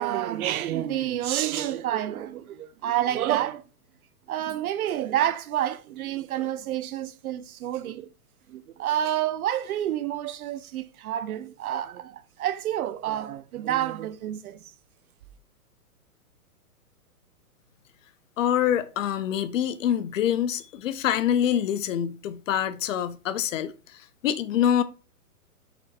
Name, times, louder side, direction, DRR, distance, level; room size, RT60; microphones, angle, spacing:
voice 1, 0.0-3.6 4.3-8.1 8.5-14.6, right 12 dB, 65° right, 0.5 m, -29 dB
voice 2, 18.4-24.8, left 10 dB, 55° left, 0.6 m, -25 dB
4.3 x 2.5 x 4.1 m
hypercardioid pair, 140°, 47 cm